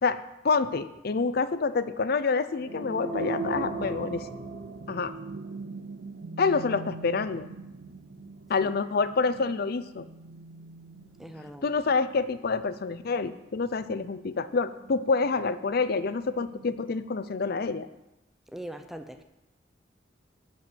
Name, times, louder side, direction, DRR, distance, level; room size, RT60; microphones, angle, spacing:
voice 1, 0.0-4.3 4.9-5.1 6.4-7.5 8.5-10.1 11.6-17.9, left 4 dB, 55° left, 0.5 m, -27 dB
sound 1, 2.6-5.2, right 1 dB, 50° right, 3.7 m, -37 dB
sound 2, 3.1-17.0, right 4 dB, 65° right, 0.5 m, -42 dB
voice 2, 11.2-11.7 18.5-19.2, right 1 dB, ahead, 0.7 m, -41 dB
11.0 x 4.5 x 8.0 m
head